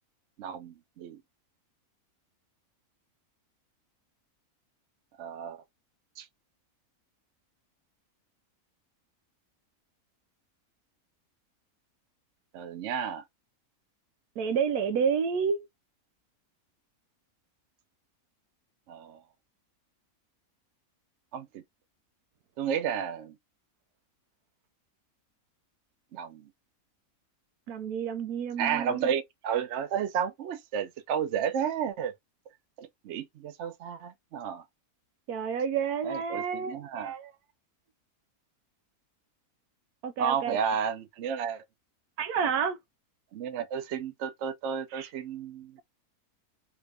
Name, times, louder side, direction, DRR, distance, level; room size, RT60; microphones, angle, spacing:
voice 1, 0.4-1.2 5.2-5.6 6.2-6.3 12.5-13.2 18.9-19.2 21.3-21.6 22.6-23.4 26.1-26.5 28.6-32.1 32.8-34.6 36.0-37.1 40.2-41.6 43.3-45.8, right 8 dB, 60° right, 0.8 m, -32 dB
voice 2, 14.4-15.7 27.7-29.1 35.3-37.3 40.0-40.6 42.2-42.8 44.9-45.1, right 6 dB, 85° right, 1.2 m, -30 dB
3.4 x 2.5 x 3.3 m
omnidirectional pair, 1.6 m